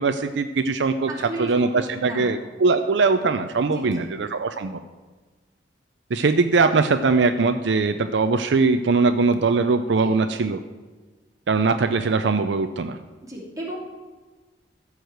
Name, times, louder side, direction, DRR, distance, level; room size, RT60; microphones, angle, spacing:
voice 1, 0.0-4.8 6.1-10.6 11.5-13.0, right 4 dB, 70° right, 9 dB, 0.5 m, -21 dB
voice 2, 1.1-2.4 3.6-4.1 10.0-10.1 13.2-13.8, right 1 dB, 20° right, -4 dB, 2.7 m, -34 dB
13.5 x 4.9 x 7.8 m, 1.3 s
head